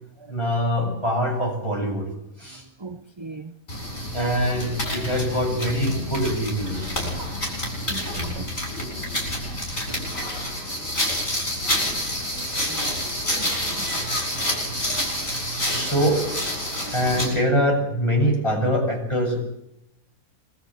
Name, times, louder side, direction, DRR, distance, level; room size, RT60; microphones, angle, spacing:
voice 1, 0.3-2.1 2.4-2.6 4.1-6.9 14.4-14.8 15.5-16.2 16.9-19.5, equal, 20° left, 7.8 m, -24 dB
voice 2, 2.8-3.5 3.9-4.1 7.9-8.5 9.0-9.1 9.9-10.0 12.5-13.1 13.4-13.9 15.2-15.4 16.7-16.9, right 3 dB, 25° right, 0.7 m, -40 dB
sound 1, 3.7-17.4, left 1 dB, 65° left, 8.3 m, -28 dB
23.5 x 14.5 x 7.9 m
omnidirectional pair, 1.5 m